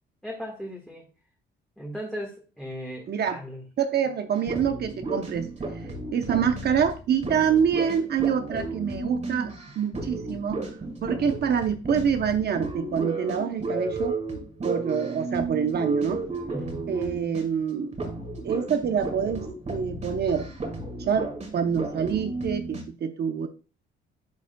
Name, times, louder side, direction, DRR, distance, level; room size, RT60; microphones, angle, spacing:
voice 1, 0.2-1.1 1.8-3.6 16.5-16.9, equal, 5° left, -1 dB, 1.6 m, -37 dB
voice 2, 3.1-3.4 3.8-5.5 6.1-10.6 11.0-14.2 14.6-16.2 16.9-18.0 18.4-20.5 21.0-23.5, right 7 dB, 55° right, 7 dB, 0.7 m, -26 dB
sound 1, 4.4-17.6 17.9-22.8, right 2 dB, 35° right, 1.9 m, -33 dB
10.5 x 4.8 x 2.2 m, 0.34 s
cardioid pair, 90°, 20 cm